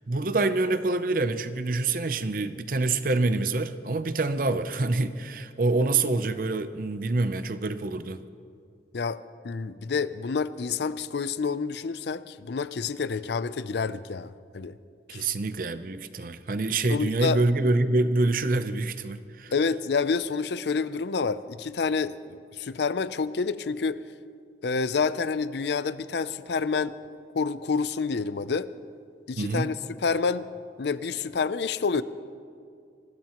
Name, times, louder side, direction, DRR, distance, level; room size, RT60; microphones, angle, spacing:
voice 1, 0.1-8.2 15.1-19.5 29.4-29.7, right 2 dB, 50° right, 0.6 m, -26 dB
voice 2, 8.9-14.8 15.1-15.3 16.9-17.4 19.5-24.0 24.6-27.0 27.3-28.7 29.3-30.5 30.8-32.0, left 5 dB, 70° left, 0.5 m, -28 dB
24.0 x 18.0 x 3.0 m
head